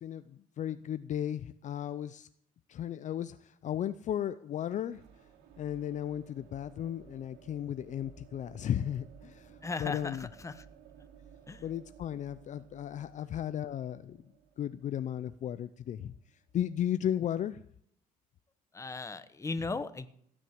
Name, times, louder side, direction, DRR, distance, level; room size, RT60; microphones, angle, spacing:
voice 1, 0.0-2.3 2.7-5.0 5.6-10.3 11.6-14.2 14.6-16.1 16.5-17.6, left 10 dB, 50° left, 13 dB, 0.5 m, -35 dB
sound 1, 4.8-16.6, right 8 dB, 85° right, 2.8 m, -57 dB
voice 2, 9.6-10.7 11.5-11.6 18.7-20.1, left 3 dB, 20° left, 12 dB, 1.1 m, -37 dB
17.0 x 6.2 x 9.5 m, 0.69 s
cardioid pair, 110°, 16 cm